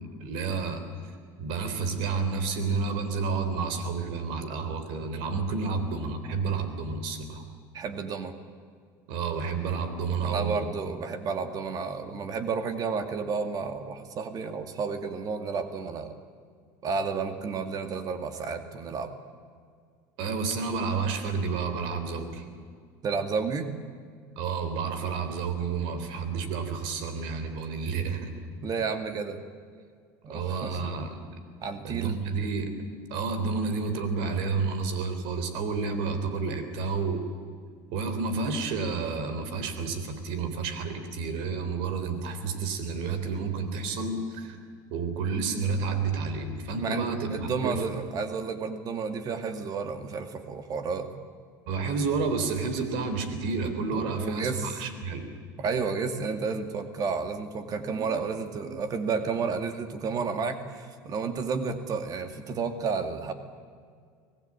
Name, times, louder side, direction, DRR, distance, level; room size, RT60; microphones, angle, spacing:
voice 1, 0.2-0.9 1.4-7.4 9.1-10.7 20.2-22.4 24.4-28.3 30.3-31.1 31.8-32.7 33.1-37.2 37.9-44.6 44.9-47.3 47.6-47.8 51.7-55.3, right 4 dB, 70° right, 9 dB, 3.7 m, -30 dB
voice 2, 7.7-8.4 10.2-16.2 16.8-19.1 23.0-23.7 28.6-29.4 30.2-30.8 31.6-32.2 46.8-51.1 53.9-54.7 55.6-63.3, right 5 dB, 45° right, 8 dB, 2.3 m, -31 dB
24.5 x 18.0 x 8.9 m, 2.1 s
supercardioid pair, 105°, 9 cm